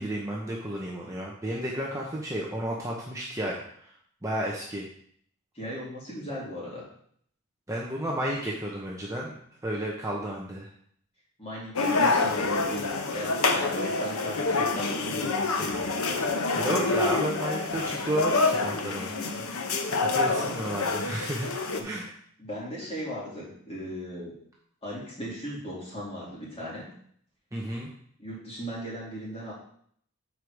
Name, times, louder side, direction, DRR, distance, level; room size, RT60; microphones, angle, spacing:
voice 1, 0.0-3.6 4.2-4.8 7.7-9.4 9.6-10.7 16.6-19.1 20.1-21.5 21.8-22.1 27.5-27.9, right 1 dB, 15° right, -3 dB, 0.8 m, -32 dB
voice 2, 5.5-6.9 11.4-16.3 19.2-19.5 20.4-20.5 21.6-22.0 22.4-24.3 24.8-26.9 28.2-29.5, equal, 25° left, -6 dB, 2.7 m, -37 dB
sound 1, 11.8-21.8, left 3 dB, 75° left, 0.8 m, -27 dB
6.8 x 4.6 x 4.8 m, 0.63 s
head